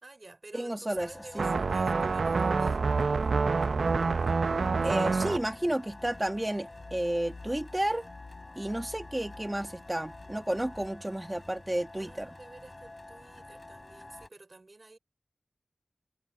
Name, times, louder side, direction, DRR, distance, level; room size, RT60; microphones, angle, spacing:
voice 1, 0.0-2.8 12.0-15.0, right 2 dB, 50° right, 5.1 m, -51 dB
voice 2, 0.5-1.1 1.4-1.5 4.8-8.1 8.6-12.3, right 1 dB, 20° right, 1.6 m, -31 dB
sound 1, 0.9-14.3, left 2 dB, 35° left, 5.1 m, -49 dB
sound 2, 1.4-5.4, right 4 dB, 85° right, 0.7 m, -27 dB
sound 3, 3.7-10.9, left 3 dB, 65° left, 3.2 m, -49 dB
wide cardioid pair, 65°, 0 cm